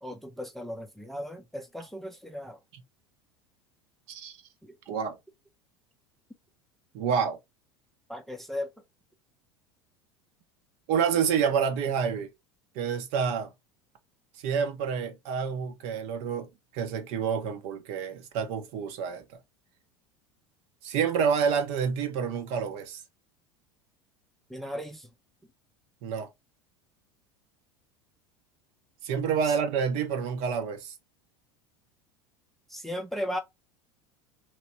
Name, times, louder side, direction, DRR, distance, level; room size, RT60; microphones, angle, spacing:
voice 1, 0.0-2.6 4.6-4.8 8.1-8.7 24.5-25.1 29.4-29.5 32.7-33.4, equal, ahead, 0.6 m, -36 dB
voice 2, 4.9-5.2 6.9-7.4 10.9-12.3 12.7-13.5 14.4-19.2 20.8-23.0 26.0-26.3 29.0-30.9, right 7 dB, 50° right, 0.9 m, -28 dB
3.1 x 3.1 x 2.8 m
figure-of-eight pair, 75°, 14 cm